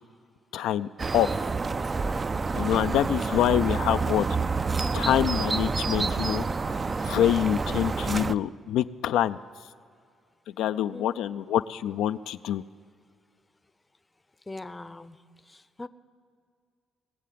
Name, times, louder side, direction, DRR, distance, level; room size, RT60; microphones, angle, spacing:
voice 1, 0.5-1.5 2.5-4.3 4.9-9.4 10.6-12.6, left 11 dB, 85° left, 11 dB, 0.3 m, -26 dB
sound 1, 1.0-8.3, right 4 dB, 30° right, 0.3 m, -28 dB
voice 2, 14.5-15.2 15.5-15.9, left 2 dB, 15° left, 14 dB, 0.6 m, -41 dB
20.0 x 7.6 x 7.5 m, 2.3 s
cardioid pair, 90°, 0 cm